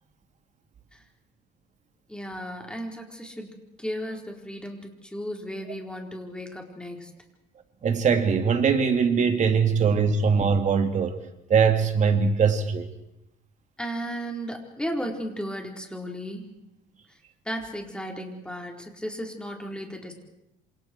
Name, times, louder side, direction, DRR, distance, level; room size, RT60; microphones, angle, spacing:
voice 1, 2.1-3.5 3.8-7.1 13.8-16.5 17.1-17.2 17.4-20.1, equal, 5° left, 2 dB, 4.4 m, -35 dB
voice 2, 7.8-11.1 11.5-12.9, right 6 dB, 45° right, 5 dB, 3.2 m, -21 dB
27.5 x 27.0 x 4.7 m, 0.84 s
cardioid pair, 110°, 17 cm